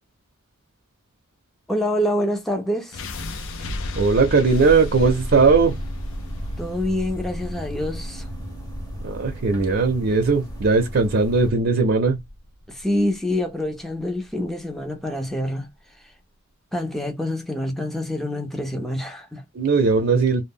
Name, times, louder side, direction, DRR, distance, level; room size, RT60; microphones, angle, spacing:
voice 1, 1.7-3.0 6.6-8.3 12.7-16.1 16.7-19.4, left 1 dB, ahead, 0.4 m, -26 dB
sound 1, 2.9-15.0, left 1 dB, 65° left, 0.5 m, -34 dB
voice 2, 4.0-5.8 9.0-12.2 19.5-20.4, right 4 dB, 55° right, 0.5 m, -18 dB
sound 2, 5.0-11.5, equal, 20° left, 0.8 m, -36 dB
2.1 x 2.0 x 3.5 m
head